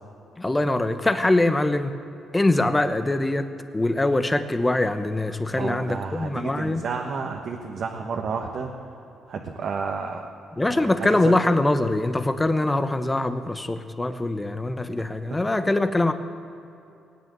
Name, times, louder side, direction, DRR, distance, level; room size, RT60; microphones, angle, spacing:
voice 1, 0.4-1.9 2.3-6.8 10.6-16.1, left 2 dB, 15° left, 10 dB, 1.0 m, -23 dB
voice 2, 5.5-8.7 9.3-10.3 10.6-11.4 15.3-15.7, right 5 dB, 60° right, 1 dB, 1.3 m, -31 dB
18.5 x 9.4 x 8.1 m, 2.8 s
cardioid pair, 90°, 0 cm